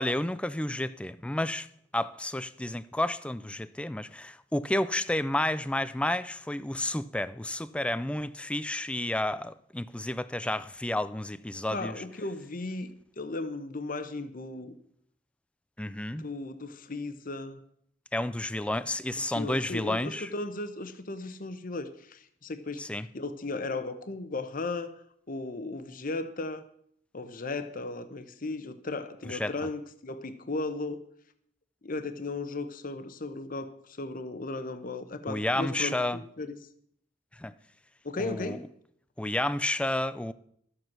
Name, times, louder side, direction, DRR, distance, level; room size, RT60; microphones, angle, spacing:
voice 1, 0.0-1.7 1.9-11.9 15.8-16.2 18.1-20.3 22.8-23.1 29.3-29.5 35.3-36.2 37.4-37.5 38.2-38.6 39.2-40.3, left 1 dB, 5° left, 0.4 m, -31 dB
voice 2, 11.7-14.7 16.2-17.6 19.3-22.9 23.1-24.9 25.3-26.6 27.1-31.0 31.8-36.6 38.0-38.7, left 2 dB, 50° left, 0.9 m, -36 dB
12.5 x 7.8 x 6.0 m
head